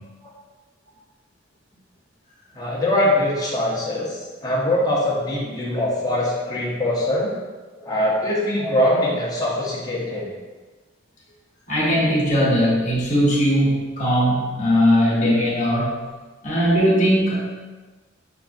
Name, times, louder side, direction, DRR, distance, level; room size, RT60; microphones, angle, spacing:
voice 1, 2.6-7.3 7.8-10.3, left 1 dB, 20° left, -5 dB, 0.8 m, -22 dB
voice 2, 11.7-16.0 16.4-17.4, equal, 40° left, -7 dB, 1.0 m, -19 dB
5.6 x 2.5 x 2.5 m, 1.3 s
head